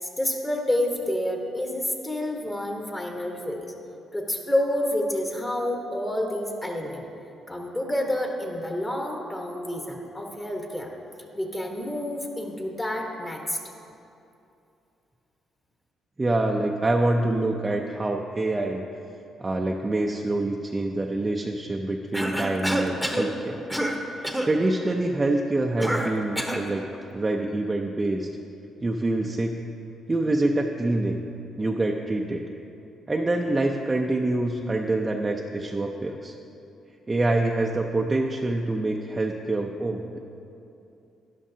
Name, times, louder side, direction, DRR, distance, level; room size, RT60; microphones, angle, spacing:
voice 1, 0.0-3.7 4.1-7.0 7.5-10.9 11.3-13.6, left 1 dB, 20° left, 1 dB, 1.3 m, -29 dB
voice 2, 16.2-18.8 19.4-23.7 24.4-26.9 27.1-28.3 28.8-29.6 30.1-31.2 31.6-32.4 33.1-36.3 37.1-40.2, right 2 dB, 20° right, 1 dB, 0.5 m, -26 dB
Cough, 22.1-23.3 23.7-24.0 24.2-24.5 25.8-26.7, equal, ahead, 1.0 m, -27 dB
12.5 x 10.5 x 2.8 m, 2.8 s
cardioid pair, 90°, 0 cm